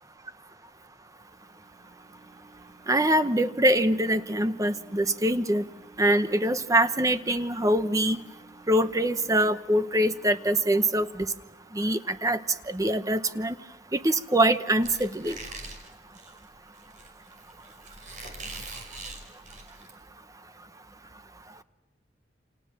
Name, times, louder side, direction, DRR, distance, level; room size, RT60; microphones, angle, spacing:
sound 1, 1.1-13.2 13.7-13.8, right 3 dB, 60° right, 7.5 m, -56 dB
voice 1, 2.9-5.6 6.0-8.2 8.7-11.3 11.7-12.4 12.7-13.5 13.9-15.4, right 1 dB, 20° right, 11 dB, 0.9 m, -24 dB
Squeak, 14.8-19.9, right 2 dB, 45° right, 5.4 m, -42 dB
29.0 x 27.0 x 7.5 m, 1.0 s
head